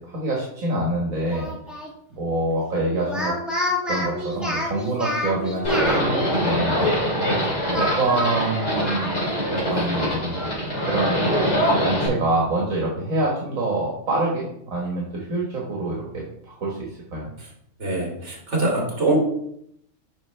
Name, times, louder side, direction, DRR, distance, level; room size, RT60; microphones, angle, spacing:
voice 1, 0.0-1.5 2.2-3.3 3.9-6.9 7.7-9.1 9.5-10.3 10.6-11.2 11.8-17.3, right 2 dB, 75° right, -3 dB, 1.9 m, -26 dB
Speech, 1.3-1.9 3.0-6.0 7.7-9.5 9.8-9.9 10.3-11.7, left 1 dB, ahead, 1.9 m, -29 dB
Livestock farm animals working animals, 5.6-12.1, equal, 55° left, 3.4 m, -23 dB
voice 2, 17.8-19.2, right 2 dB, 55° right, -2 dB, 2.9 m, -23 dB
8.8 x 5.7 x 3.3 m, 0.72 s
omnidirectional pair, 1.4 m